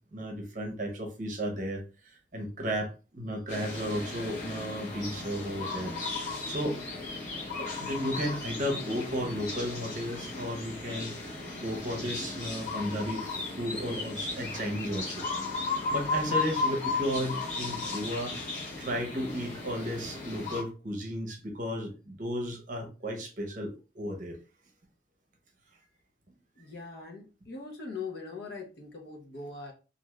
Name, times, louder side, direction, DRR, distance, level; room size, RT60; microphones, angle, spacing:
voice 1, 0.1-1.8 2.3-6.8 7.6-11.1 11.6-13.2 13.6-15.2 15.7-18.4 18.8-24.3, equal, 45° right, 2 dB, 0.7 m, -34 dB
sound 1, 3.5-20.6, left 3 dB, 40° left, 1.1 m, -35 dB
voice 2, 26.6-29.7, left 4 dB, 60° left, 1 dB, 0.8 m, -41 dB
2.5 x 2.3 x 3.1 m, 0.33 s
head